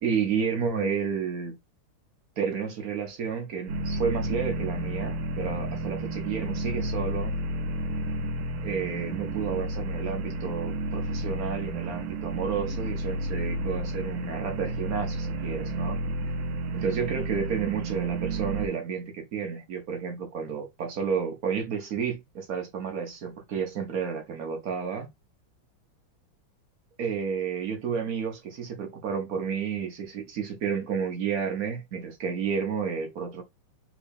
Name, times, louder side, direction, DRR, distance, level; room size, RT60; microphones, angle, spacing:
voice 1, 0.0-1.6 2.4-7.4 8.6-16.0 16.7-25.1 27.0-33.4, right 6 dB, 65° right, 0.9 m, -31 dB
sound 1, 3.7-18.7, right 1 dB, 90° right, 1.5 m, -31 dB
3.6 x 2.7 x 3.5 m
omnidirectional pair, 2.2 m